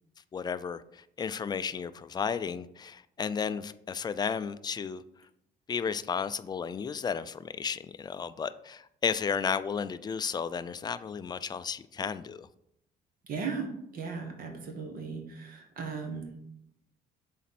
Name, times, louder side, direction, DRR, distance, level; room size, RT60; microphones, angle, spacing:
voice 1, 0.3-5.0 5.7-12.5, left 6 dB, 25° left, 0.3 m, -33 dB
voice 2, 13.2-16.3, right 5 dB, 60° right, 1.4 m, -37 dB
7.0 x 4.2 x 4.3 m
cardioid pair, 110°, 17 cm